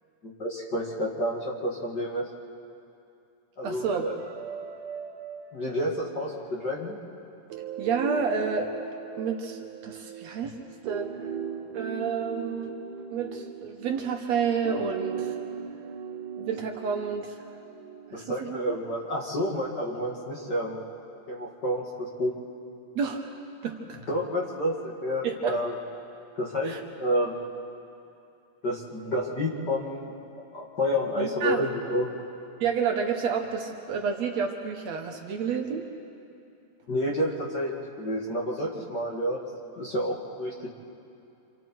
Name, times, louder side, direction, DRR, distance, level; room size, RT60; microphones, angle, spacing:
voice 1, 0.2-2.3 3.6-4.1 5.5-7.0 18.1-20.8 21.3-22.3 24.1-25.8 26.4-27.5 28.6-32.1 36.9-40.7, equal, 35° left, -3 dB, 2.4 m, -30 dB
voice 2, 3.6-4.0 7.8-8.7 9.2-10.6 10.9-11.3 11.7-12.7 13.1-15.3 16.4-17.4 18.1-18.6 23.0-23.3 23.6-24.0 25.2-25.6 26.6-26.8 31.2-31.6 32.6-35.9, right 6 dB, 65° right, 3 dB, 2.2 m, -30 dB
sound 1, 4.2-7.0 7.5-18.5, right 8 dB, 90° right, 2.3 m, -39 dB
28.0 x 27.0 x 4.7 m, 2.7 s
omnidirectional pair, 3.5 m